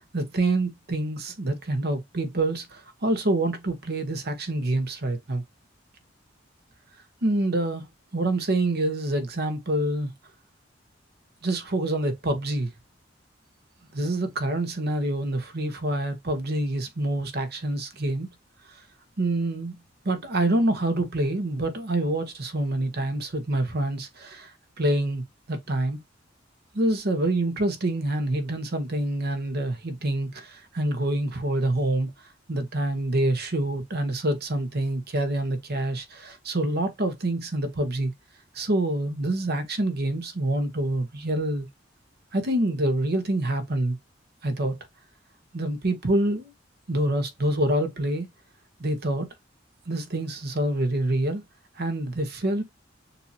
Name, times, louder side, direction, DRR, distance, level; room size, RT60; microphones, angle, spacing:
voice 1, 0.0-5.4 7.2-10.1 11.4-12.7 13.9-18.3 19.2-19.8 20.0-24.5 24.8-26.0 26.7-32.1 32.5-38.1 38.5-41.7 42.3-44.0 44.4-44.8 45.5-46.5 46.9-48.3 48.8-49.3 49.9-51.4 51.8-52.6, right 1 dB, 55° right, 1.0 m, -26 dB
6.9 x 2.7 x 2.7 m
head